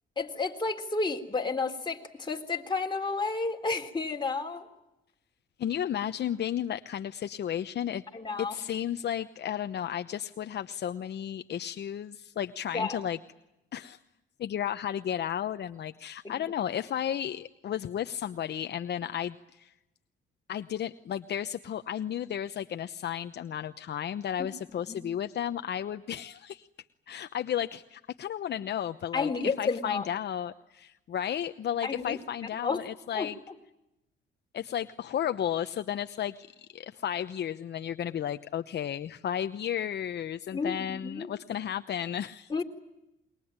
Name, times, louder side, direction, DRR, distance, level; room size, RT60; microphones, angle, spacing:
voice 1, 0.2-4.7 8.1-8.6 12.7-13.0 16.2-16.4 24.4-24.5 24.9-25.0 29.1-30.1 31.8-32.2 32.6-32.8 33.1-33.3 40.5-41.3 42.5-42.6, left 4 dB, 25° left, 3 dB, 3.6 m, -31 dB
voice 2, 5.6-8.0 8.4-13.2 13.7-14.0 14.4-19.7 20.5-26.7 27.1-29.3 29.6-33.4 34.5-42.6, left 10 dB, 60° left, 9 dB, 0.9 m, -33 dB
27.5 x 22.5 x 8.9 m, 0.90 s
cardioid pair, 90°, 20 cm